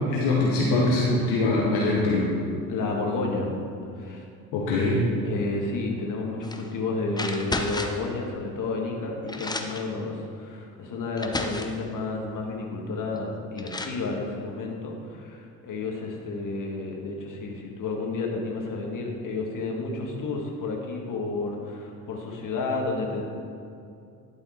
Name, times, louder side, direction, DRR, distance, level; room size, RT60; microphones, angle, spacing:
voice 1, 0.1-2.3 4.5-5.0, left 2 dB, 65° left, -4 dB, 1.3 m, -23 dB
voice 2, 2.7-3.5 4.0-4.2 5.2-23.2, left 3 dB, 45° left, 0 dB, 1.7 m, -31 dB
sound 1, 6.4-6.7 7.1-8.1 8.9-9.0 9.3-9.9 10.7-10.8 11.2-11.8 13.2-13.3 13.6-14.0, left 2 dB, 10° left, 0.7 m, -32 dB
11.5 x 4.1 x 4.4 m, 2.5 s
hypercardioid pair, 55°, 43 cm